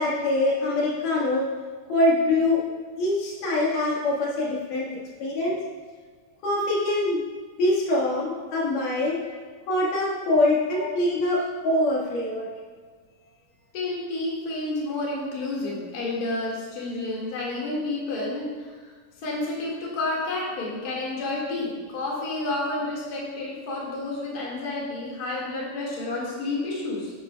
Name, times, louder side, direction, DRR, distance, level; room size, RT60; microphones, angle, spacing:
voice 1, 0.0-1.5 1.9-2.6 3.0-5.6 6.4-7.2 7.6-9.2 9.7-12.5, left 2 dB, 75° left, -4 dB, 3.1 m, -24 dB
voice 2, 13.7-18.7 19.2-27.1, left 2 dB, 35° left, -5 dB, 1.7 m, -30 dB
10.0 x 8.5 x 2.2 m, 1.5 s
omnidirectional pair, 3.8 m